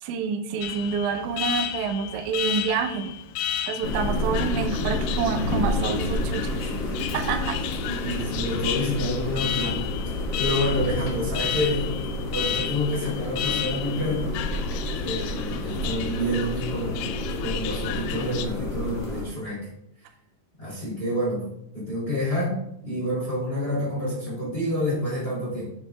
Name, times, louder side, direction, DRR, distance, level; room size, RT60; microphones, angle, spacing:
voice 1, 0.0-3.1 3.7-6.7 7.1-7.6, right 6 dB, 90° right, 6 dB, 3.1 m, -28 dB
Alarm, 0.6-18.5, left 11 dB, 80° left, 2.6 m, -33 dB
sound 1, 3.8-19.2, left 2 dB, 55° left, 2.4 m, -29 dB
voice 2, 7.8-9.8 10.4-14.4 15.0-19.7 20.6-21.4 21.7-22.5 22.8-25.7, left 1 dB, 15° left, -6 dB, 2.3 m, -28 dB
9.6 x 8.0 x 2.4 m, 0.83 s
omnidirectional pair, 5.2 m